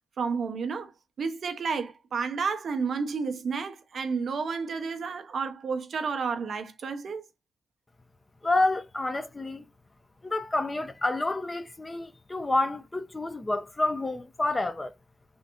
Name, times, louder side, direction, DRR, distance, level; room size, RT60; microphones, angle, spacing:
voice 1, 0.2-0.9 1.2-7.3, right 5 dB, 70° right, 0.6 m, -31 dB
voice 2, 8.4-9.7 10.2-14.9, left 2 dB, 30° left, 0.6 m, -28 dB
3.5 x 2.5 x 2.8 m
cardioid pair, 50°, 0 cm